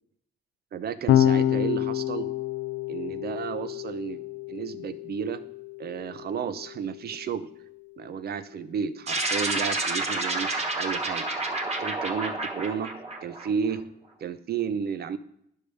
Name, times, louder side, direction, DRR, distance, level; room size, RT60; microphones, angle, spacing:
voice 1, 0.7-2.3 2.9-4.2 4.5-5.4 5.8-7.5 8.0-11.3 11.8-13.8 14.2-15.2, right 7 dB, 55° right, 13 dB, 0.6 m, -32 dB
Electric guitar / Bass guitar, 1.1-7.5, left 11 dB, 70° left, 0.5 m, -28 dB
sound 1, 9.1-13.8, right 2 dB, 30° right, 1.3 m, -29 dB
10.5 x 6.6 x 3.3 m, 0.73 s
cardioid pair, 90°, 20 cm